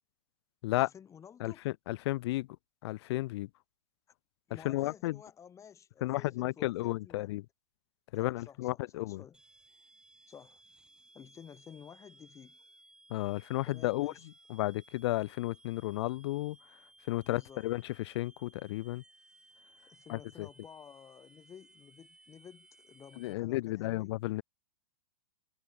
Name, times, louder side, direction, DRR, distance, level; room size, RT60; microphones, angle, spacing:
voice 1, 0.7-1.6 4.5-7.3 8.2-9.4 10.3-10.6 11.1-12.6 13.7-14.3 17.3-17.7 19.9-24.2, left 8 dB, 15° left, 1.0 m, -53 dB
voice 2, 1.4-2.5 2.8-3.5 4.6-5.2 6.0-7.4 8.1-9.2 13.1-14.1 14.5-16.6 17.1-19.0 20.1-20.5 23.2-24.4, left 18 dB, 50° left, 0.4 m, -33 dB
sound 1, 9.3-23.3, right 2 dB, 5° right, 1.2 m, -61 dB
hypercardioid pair, 115°, 17 cm